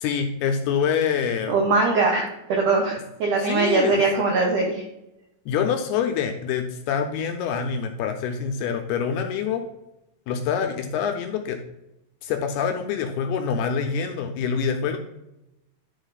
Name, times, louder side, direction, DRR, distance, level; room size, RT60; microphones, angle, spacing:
voice 1, 0.0-1.6 3.4-4.3 5.5-9.6 10.3-11.6 12.2-15.0, left 7 dB, 80° left, 5 dB, 2.4 m, -26 dB
voice 2, 1.5-4.8, right 3 dB, 80° right, 1 dB, 1.8 m, -21 dB
10.5 x 4.5 x 4.0 m, 0.90 s
omnidirectional pair, 5.0 m